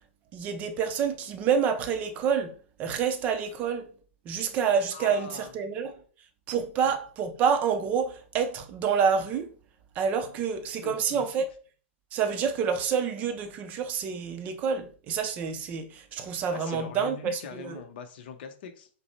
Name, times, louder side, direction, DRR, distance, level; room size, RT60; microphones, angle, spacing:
voice 1, 0.3-2.5 2.8-3.9 4.2-5.9 6.5-9.5 10.0-11.5 12.1-17.8, right 6 dB, 20° right, 0.5 m, -28 dB
voice 2, 4.9-5.5 6.8-6.9 10.8-11.2 16.5-18.9, left 6 dB, 50° left, 0.7 m, -42 dB
5.4 x 2.0 x 4.3 m
supercardioid pair, 165°, 7 cm